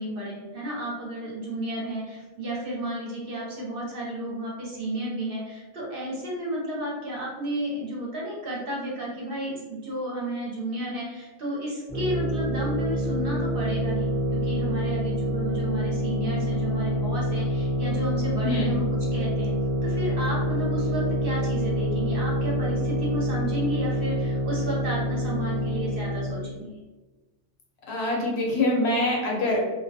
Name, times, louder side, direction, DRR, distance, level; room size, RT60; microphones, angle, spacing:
voice 1, 0.0-18.8 19.1-19.5 19.8-26.7, equal, 60° right, -4 dB, 0.7 m, -32 dB
sound 1, 11.9-26.5, equal, 15° right, 0.8 m, -27 dB
voice 2, 27.9-29.6, left 1 dB, 65° left, -3 dB, 0.8 m, -24 dB
2.2 x 2.1 x 2.6 m, 1.2 s
omnidirectional pair, 1.3 m